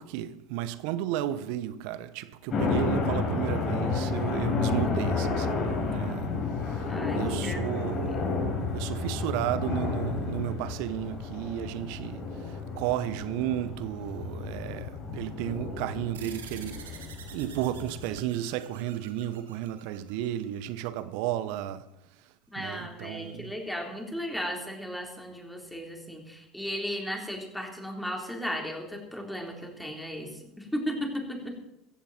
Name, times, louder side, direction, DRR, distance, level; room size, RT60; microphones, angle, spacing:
voice 1, 0.0-6.3 6.7-6.9 7.1-8.3 8.7-17.0 17.3-21.9 22.6-23.6, right 12 dB, 65° right, 0.9 m, -33 dB
sound 1, 2.5-18.2, left 4 dB, 40° left, 6.6 m, -31 dB
voice 2, 6.9-7.6 22.5-31.6, equal, ahead, 4.0 m, -35 dB
sound 2, 16.1-21.0, right 8 dB, 80° right, 2.0 m, -49 dB
15.5 x 15.0 x 4.4 m
hypercardioid pair, 75°, 0 cm